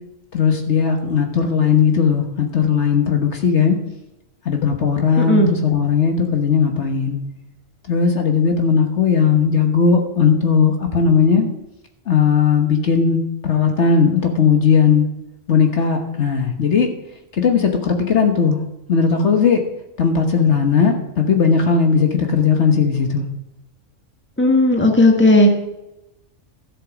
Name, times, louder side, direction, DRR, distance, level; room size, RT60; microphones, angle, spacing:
voice 1, 0.3-3.8 4.4-7.2 7.9-11.5 12.1-15.1 15.5-16.9 17.4-18.6 18.9-19.6 20.0-23.3, left 6 dB, 60° left, 3 dB, 1.6 m, -17 dB
voice 2, 5.2-5.5 24.4-25.5, left 1 dB, 10° left, 2 dB, 1.5 m, -14 dB
13.0 x 7.5 x 6.2 m, 0.91 s
omnidirectional pair, 1.3 m